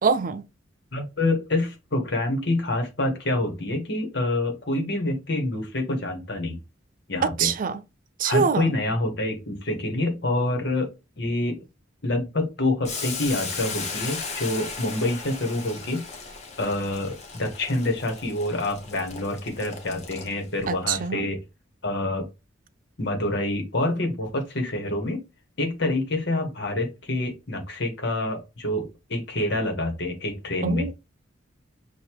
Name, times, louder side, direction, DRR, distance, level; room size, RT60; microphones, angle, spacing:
voice 1, 0.0-0.4 7.2-7.8 8.2-8.7 20.7-21.3 30.6-30.9, right 5 dB, 45° right, 0.4 m, -24 dB
voice 2, 0.9-6.6 7.1-7.5 8.2-10.9 11.2-11.6 12.0-16.1 16.6-21.4 21.8-22.3 23.0-25.2 25.6-30.9, left 2 dB, 60° left, 1.5 m, -27 dB
Boiling, 12.8-20.6, left 4 dB, 35° left, 1.1 m, -36 dB
6.5 x 2.6 x 3.0 m
head